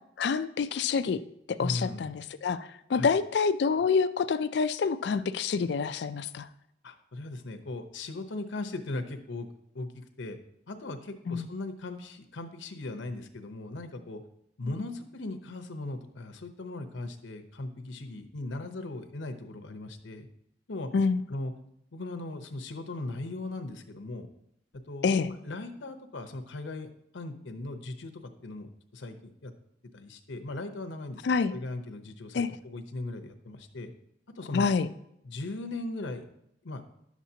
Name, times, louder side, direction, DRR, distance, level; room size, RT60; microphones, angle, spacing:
voice 1, 0.2-1.2 1.5-6.5 11.3-11.5 14.8-14.9 20.9-21.2 25.0-25.3 31.2-31.5 32.3-32.5 34.5-34.9, left 5 dB, 65° left, 14 dB, 0.4 m, -27 dB
voice 2, 1.6-2.1 2.9-3.1 6.8-9.5 9.7-10.4 10.7-14.2 14.6-20.3 20.7-20.9 21.3-21.5 21.9-24.3 24.9-29.5 29.9-33.9 34.4-34.6 35.2-36.2 36.6-36.8, left 2 dB, 85° left, 7 dB, 0.8 m, -38 dB
11.0 x 7.2 x 2.8 m, 0.77 s
head